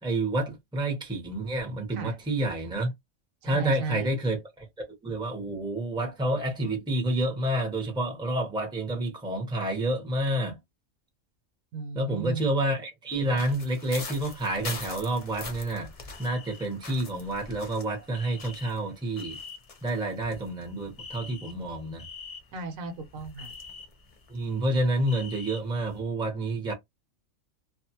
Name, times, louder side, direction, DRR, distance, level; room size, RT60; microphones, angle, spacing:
voice 1, 0.0-2.9 3.4-4.6 5.0-10.6 11.9-15.9 16.2-19.4 19.8-22.1 24.3-26.7, right 1 dB, 5° right, 0.7 m, -29 dB
voice 2, 3.4-4.1 11.7-12.5 22.5-23.5, right 4 dB, 80° right, 1.1 m, -36 dB
sound 1, 13.1-22.8 23.0-26.0, left 4 dB, 40° left, 0.5 m, -43 dB
2.6 x 2.4 x 2.8 m
omnidirectional pair, 1.4 m